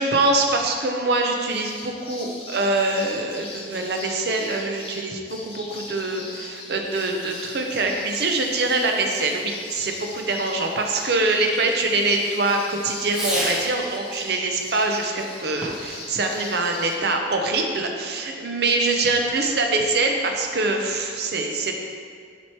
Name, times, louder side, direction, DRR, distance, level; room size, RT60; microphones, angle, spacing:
voice 1, 0.0-21.7, right 2 dB, 60° right, 3 dB, 0.6 m, -24 dB
sound 1, 1.5-17.0, left 2 dB, 30° left, 0.7 m, -41 dB
Fireworks, 6.8-13.9 15.5-16.0, equal, 5° right, 0.8 m, -36 dB
7.3 x 3.1 x 4.4 m, 2.1 s
head